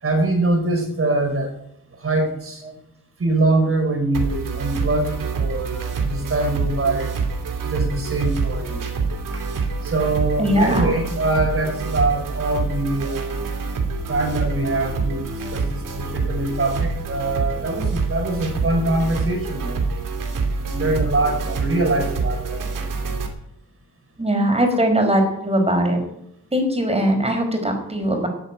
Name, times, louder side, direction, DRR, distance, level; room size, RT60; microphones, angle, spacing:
voice 1, 0.0-1.5 2.0-2.6 3.2-7.2 7.6-8.9 9.3-9.4 9.8-13.5 14.1-19.8 20.6-22.9, right 2 dB, 40° right, 5 dB, 4.0 m, -23 dB
sound 1, 4.1-23.3, right 4 dB, 70° right, 2.6 m, -26 dB
voice 2, 10.4-10.9 24.2-26.0 26.5-28.3, equal, 20° right, 4 dB, 4.7 m, -20 dB
13.5 x 8.1 x 9.1 m, 0.80 s
cardioid pair, 100°, 34 cm